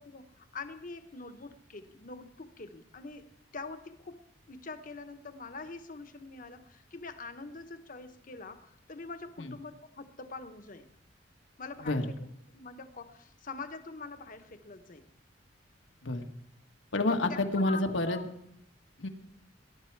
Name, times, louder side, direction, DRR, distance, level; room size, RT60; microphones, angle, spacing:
voice 1, 0.0-4.2 4.5-10.9 11.6-12.0 12.5-15.1 17.1-18.3, left 3 dB, 45° left, 8 dB, 1.1 m, -44 dB
voice 2, 11.8-12.1 16.0-16.3 16.9-18.2 19.0-19.1, left 2 dB, 85° left, 5 dB, 1.4 m, -29 dB
20.0 x 11.0 x 4.6 m, 0.73 s
head